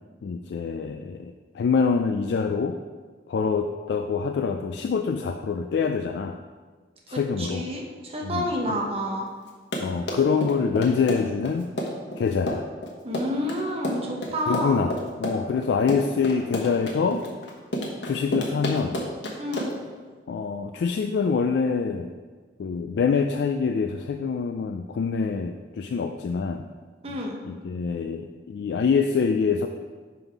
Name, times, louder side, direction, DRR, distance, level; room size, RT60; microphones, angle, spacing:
voice 1, 0.2-2.8 3.3-6.4 7.1-7.6 8.2-8.8 9.8-11.7 12.2-12.7 14.5-14.9 15.2-17.2 18.0-19.0 20.3-22.1 22.6-26.6 27.5-29.7, left 5 dB, 70° left, 6 dB, 0.3 m, -25 dB
voice 2, 7.1-9.2 13.0-14.8 15.9-16.4 19.4-19.7 27.0-27.4, equal, 35° right, -1 dB, 0.9 m, -30 dB
Run, 9.5-19.9, equal, 90° left, 1.2 m, -30 dB
5.6 x 5.3 x 4.6 m, 1.5 s
head